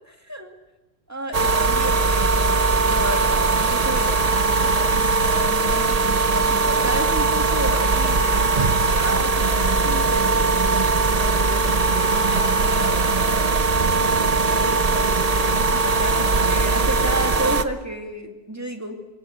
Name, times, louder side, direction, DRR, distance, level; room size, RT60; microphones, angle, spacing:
voice 1, 0.1-0.5 1.1-10.5 11.1-13.5 14.5-19.0, right 1 dB, 10° right, 3 dB, 2.2 m, -32 dB
sound 1, 1.3-17.6, right 3 dB, 35° right, 0.8 m, -20 dB
22.0 x 17.0 x 7.9 m, 1.1 s
omnidirectional pair, 1.4 m